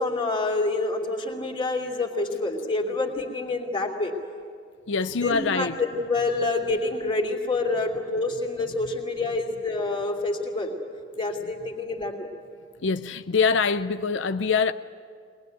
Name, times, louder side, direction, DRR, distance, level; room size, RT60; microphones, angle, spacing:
voice 1, 0.0-4.1 5.2-10.8 11.2-12.3, left 2 dB, 25° left, 2.9 m, -27 dB
voice 2, 4.9-5.8 12.8-14.7, left 5 dB, 70° left, 0.6 m, -24 dB
23.0 x 20.0 x 9.2 m
head